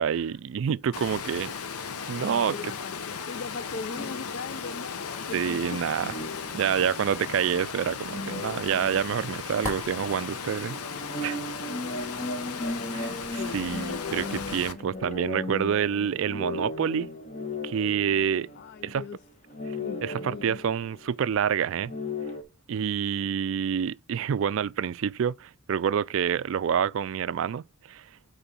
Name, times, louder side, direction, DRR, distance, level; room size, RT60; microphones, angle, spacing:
voice 1, 0.0-1.5 2.1-2.7 5.3-6.1 6.5-10.8 11.2-11.4 12.9-17.1 17.6-18.5 18.8-19.0 20.0-21.9 22.7-28.1, right 8 dB, 60° right, 0.3 m, -27 dB
Water, 0.9-14.7, left 6 dB, 90° left, 0.8 m, -36 dB
voice 2, 2.2-5.9 13.1-14.6 18.6-19.2 19.8-20.6, left 4 dB, 50° left, 0.4 m, -39 dB
sound 1, 3.9-4.9 6.0-7.3 7.9-9.8 10.0-10.2 10.7-19.1 19.5-21.1 21.8-22.4, left 2 dB, 30° left, 1.1 m, -37 dB
sound 2, 5.9-15.2, left 1 dB, 10° left, 2.5 m, -47 dB
9.0 x 3.8 x 4.3 m
head